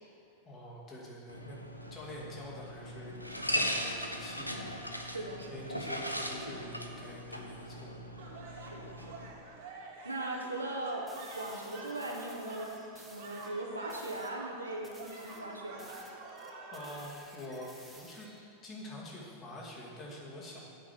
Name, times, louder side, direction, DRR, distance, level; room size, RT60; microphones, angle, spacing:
voice 1, 0.4-1.6 1.9-5.2 5.5-8.1 16.7-18.3 18.6-20.6, left 1 dB, 30° left, -5 dB, 2.5 m, -46 dB
sound 1, 1.3-9.3, equal, 90° left, 0.7 m, -38 dB
voice 2, 5.0-5.7 8.5-9.2 10.0-11.1 11.4-15.9, right 2 dB, 80° right, -1 dB, 1.2 m, -39 dB
sound 2, 8.2-17.1, right 3 dB, 50° right, 1.7 m, -48 dB
sound 3, 11.1-13.5 13.9-14.4 14.8-18.5, right 1 dB, ahead, 1.2 m, -55 dB
8.7 x 5.3 x 7.8 m, 2.7 s
figure-of-eight pair, 90°, 0 cm